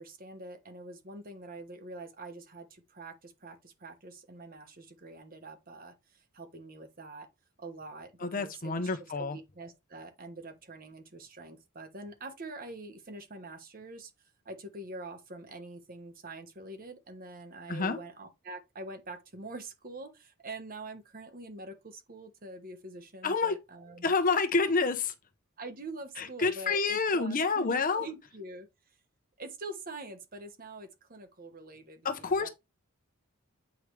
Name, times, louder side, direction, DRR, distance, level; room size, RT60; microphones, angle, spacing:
voice 1, 0.0-7.3 7.6-14.1 14.4-24.1 24.7-25.0 25.6-28.7 29.4-32.5, right 2 dB, 40° right, 1.3 m, -45 dB
voice 2, 8.2-9.4 17.7-18.0 23.2-23.5 24.0-25.0 26.2-28.1 32.0-32.5, left 4 dB, 40° left, 0.9 m, -28 dB
8.2 x 4.9 x 3.3 m
head